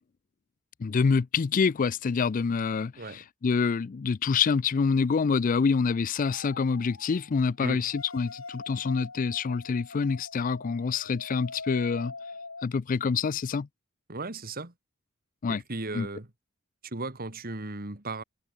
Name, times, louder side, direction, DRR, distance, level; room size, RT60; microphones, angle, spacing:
voice 1, 0.8-12.1 12.6-13.7 15.4-15.6 15.9-16.1, left 5 dB, 40° left, 0.4 m, -26 dB
sound 1, 6.3-7.4 7.8-12.6, left 3 dB, 70° left, 5.9 m, -43 dB
voice 2, 14.1-14.7 15.5-16.3 16.8-18.2, right 2 dB, 45° right, 2.2 m, -36 dB
head